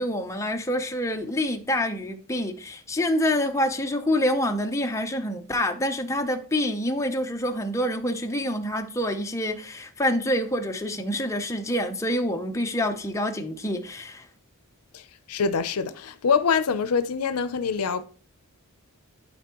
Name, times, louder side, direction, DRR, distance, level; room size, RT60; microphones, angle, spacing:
voice 1, 0.0-14.3, left 1 dB, 15° left, 0.7 m, -27 dB
voice 2, 15.3-18.0, left 6 dB, 80° left, 0.5 m, -24 dB
11.5 x 4.4 x 2.9 m
head